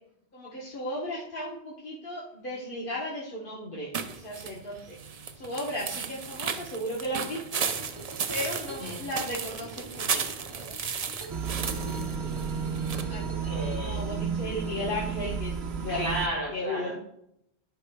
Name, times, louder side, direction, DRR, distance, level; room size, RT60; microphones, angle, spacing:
voice 1, 0.3-5.0 5.3-7.7 8.3-10.3 13.1-13.2 13.7-16.1 16.5-17.0, left 1 dB, 55° left, -5 dB, 1.4 m, -35 dB
sound 1, 3.9-13.0, right 6 dB, 50° right, 0.5 m, -34 dB
sound 2, 7.6-13.8, right 2 dB, 30° right, 0.8 m, -45 dB
sound 3, 11.3-16.3, right 6 dB, 75° right, 1.0 m, -32 dB
voice 2, 11.6-12.4 12.8-13.2 13.4-14.0 15.9-17.0, equal, 25° left, -5 dB, 1.7 m, -35 dB
11.0 x 5.4 x 2.2 m, 0.76 s
omnidirectional pair, 1.1 m